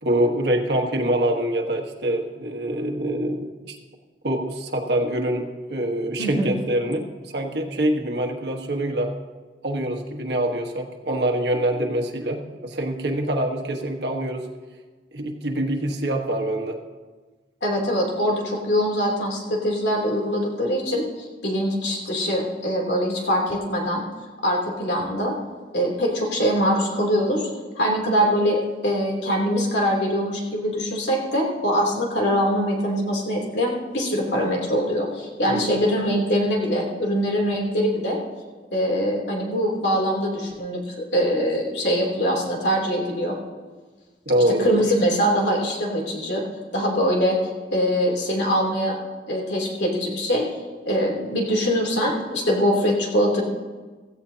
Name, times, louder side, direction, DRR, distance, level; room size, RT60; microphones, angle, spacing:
voice 1, 0.0-3.8 4.2-9.1 9.6-14.5 15.1-16.8 35.5-35.8 44.2-44.8, right 1 dB, 65° right, 3 dB, 1.4 m, -25 dB
voice 2, 6.2-6.5 17.6-24.0 24.4-25.3 25.7-27.5 27.7-38.2 38.7-43.4 44.6-46.4 46.7-47.4 47.7-49.0 49.3-50.4 50.8-53.4, equal, 75° left, -1 dB, 3.2 m, -23 dB
16.5 x 15.0 x 2.9 m, 1.3 s
head